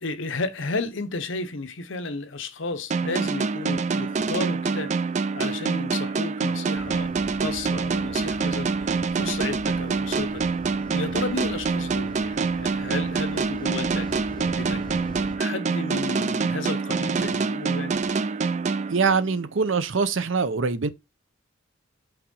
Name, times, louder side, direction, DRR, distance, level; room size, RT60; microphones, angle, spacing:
voice 1, 0.0-10.5 10.9-14.8 15.4-18.0, left 3 dB, 70° left, 0.9 m, -33 dB
sound 1, 2.9-19.5, right 4 dB, 35° right, 0.3 m, -26 dB
sound 2, 6.7-15.4, left 1 dB, 20° left, 1.0 m, -42 dB
voice 2, 18.9-20.9, right 5 dB, 70° right, 0.6 m, -23 dB
5.8 x 3.6 x 5.4 m
head